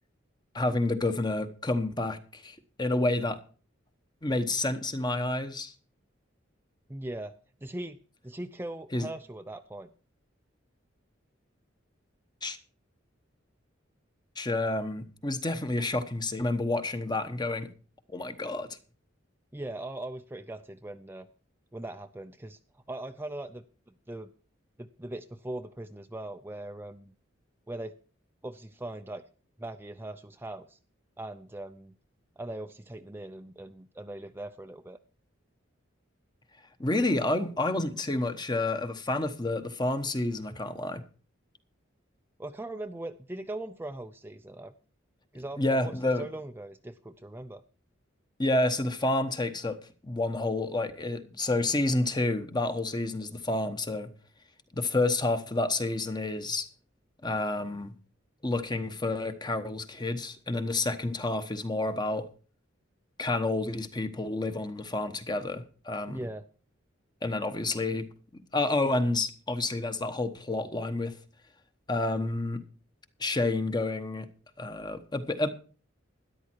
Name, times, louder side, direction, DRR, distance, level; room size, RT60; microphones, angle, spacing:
voice 1, 0.5-3.4 4.2-5.7 8.9-9.1 12.4-12.6 14.4-17.7 18.1-18.8 36.8-41.0 45.6-46.2 48.4-49.8 50.0-54.1 54.7-56.7 57.2-57.9 58.4-62.3 63.2-66.2 67.2-68.1 68.5-71.1 71.9-72.6 73.2-74.3 74.6-75.5, left 2 dB, 20° left, 1.1 m, -29 dB
voice 2, 6.9-7.3 7.6-8.0 8.2-9.9 19.5-21.3 21.7-22.6 22.9-23.6 24.1-24.3 24.8-27.1 27.7-27.9 28.4-29.2 29.6-30.8 31.2-31.9 32.4-35.0 42.4-44.7 45.3-47.6 66.1-66.4, right 1 dB, 10° right, 0.5 m, -40 dB
13.0 x 11.0 x 4.5 m
head